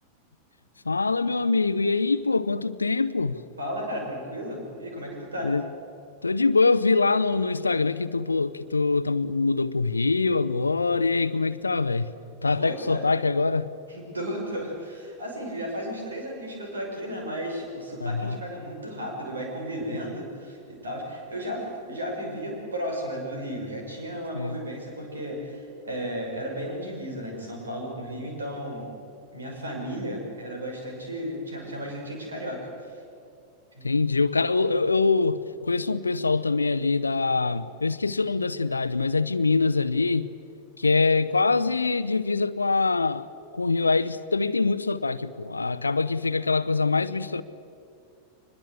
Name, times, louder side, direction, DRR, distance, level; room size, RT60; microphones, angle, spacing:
voice 1, 0.8-3.4 5.4-5.7 6.2-12.1 12.4-13.7 18.0-18.4 24.3-24.6 33.8-40.3 40.8-47.4, left 3 dB, 80° left, 0.7 m, -24 dB
voice 2, 3.6-5.5 12.6-13.1 13.9-28.9 29.3-32.9 33.8-33.9, equal, 75° right, 6.0 m, -34 dB
24.0 x 21.0 x 8.1 m
figure-of-eight pair, 90°, 0 cm